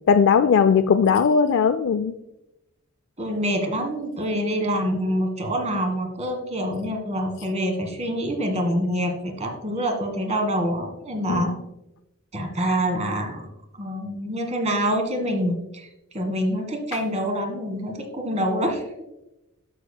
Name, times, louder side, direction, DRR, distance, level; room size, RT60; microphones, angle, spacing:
voice 1, 0.1-2.1 11.3-11.6, left 6 dB, 60° left, 10 dB, 0.4 m, -18 dB
voice 2, 3.2-11.6 12.3-13.5 13.7-18.8, equal, 35° right, 4 dB, 1.6 m, -26 dB
12.5 x 6.7 x 2.2 m, 0.91 s
head